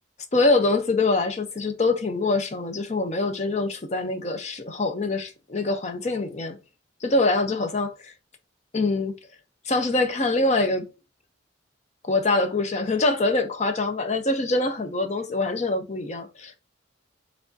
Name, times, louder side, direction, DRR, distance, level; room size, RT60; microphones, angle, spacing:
voice 1, 0.3-6.6 7.0-8.1 8.7-9.2 9.7-10.9 12.0-16.5, left 2 dB, 35° left, 0.6 m, -24 dB
4.7 x 3.4 x 2.6 m
head